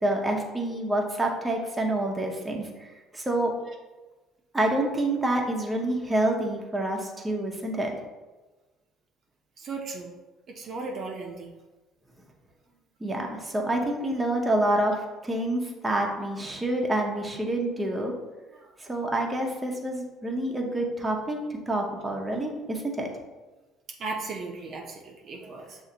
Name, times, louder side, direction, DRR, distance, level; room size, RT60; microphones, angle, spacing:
voice 1, 0.0-3.5 4.5-7.9 13.0-18.1 18.8-23.1, right 1 dB, 15° right, 1 dB, 0.8 m, -27 dB
voice 2, 9.6-10.1 10.5-11.5 24.0-25.8, right 3 dB, 50° right, 1 dB, 0.6 m, -36 dB
6.3 x 2.5 x 2.8 m, 1.2 s
supercardioid pair, 95°, 0 cm